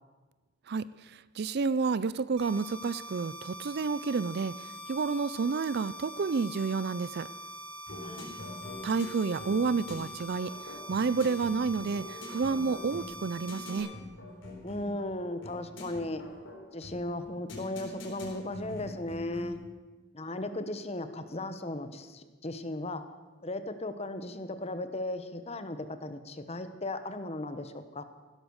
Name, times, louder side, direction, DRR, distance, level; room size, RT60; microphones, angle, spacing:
voice 1, 0.7-4.5 4.9-7.3 8.8-10.5 10.9-13.9, right 4 dB, 50° right, 17 dB, 0.4 m, -30 dB
sound 1, 2.4-13.8, equal, 90° right, 5.4 m, -44 dB
sound 2, 7.9-19.7, left 2 dB, 60° left, 3.8 m, -45 dB
voice 2, 8.0-8.3 14.6-16.2 16.7-19.6 20.1-23.0 23.4-28.0, left 2 dB, 30° left, 10 dB, 1.0 m, -36 dB
16.0 x 12.5 x 6.4 m, 1.3 s
head